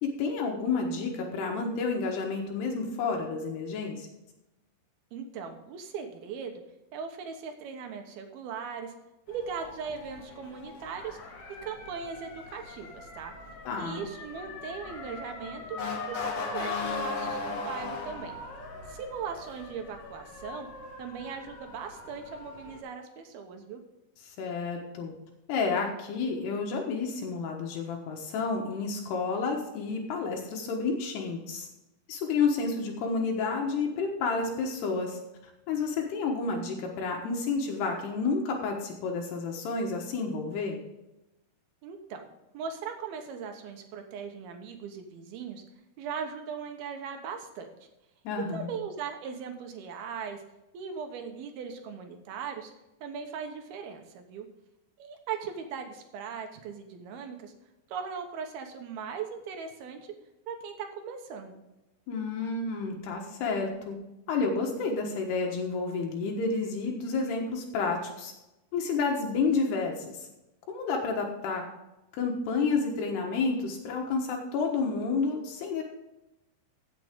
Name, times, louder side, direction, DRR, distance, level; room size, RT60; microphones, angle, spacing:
voice 1, 0.0-4.1 13.6-14.0 24.2-25.1 25.5-31.7 32.1-35.2 35.7-40.8 48.2-48.7 62.1-64.0 64.3-68.3 68.7-70.3 70.7-71.6 72.1-75.8, left 4 dB, 80° left, 1 dB, 3.4 m, -30 dB
voice 2, 5.1-6.6 6.9-8.9 9.3-11.2 11.6-13.3 13.8-15.8 16.1-18.4 18.9-20.7 21.0-23.8 41.8-45.6 46.0-47.7 48.5-50.4 50.7-52.7 53.0-54.5 55.0-57.5 57.9-60.1 60.5-61.6, right 6 dB, 75° right, 5 dB, 2.9 m, -39 dB
Motor vehicle (road) / Siren, 9.3-22.8, left 4 dB, 55° left, 1.8 m, -39 dB
16.0 x 7.5 x 3.7 m, 0.96 s
omnidirectional pair, 4.7 m